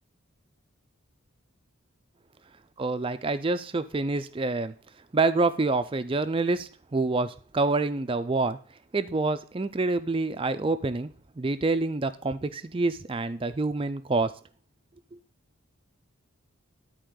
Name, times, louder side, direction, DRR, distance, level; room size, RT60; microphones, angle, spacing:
voice 1, 2.8-4.7 5.1-8.6 8.9-11.1 11.4-14.3, right 3 dB, 25° right, 12 dB, 0.4 m, -27 dB
13.0 x 4.4 x 3.8 m, 0.40 s
head